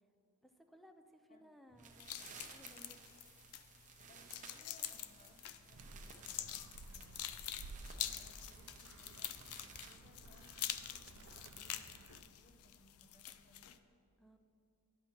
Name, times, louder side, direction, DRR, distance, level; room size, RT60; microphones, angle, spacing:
voice 1, 0.4-2.0 2.5-3.0 14.2-14.4, equal, ahead, 5 dB, 0.4 m, -61 dB
sound 1, 1.7-10.0, right 5 dB, 35° right, 0.7 m, -58 dB
sound 2, 2.0-13.8, left 11 dB, 80° left, 0.4 m, -47 dB
voice 2, 4.1-7.4 8.1-13.8, left 1 dB, 35° left, 4 dB, 0.7 m, -67 dB
Animal, 5.7-12.2, right 3 dB, 70° right, 0.4 m, -55 dB
11.5 x 7.5 x 2.9 m, 2.8 s
head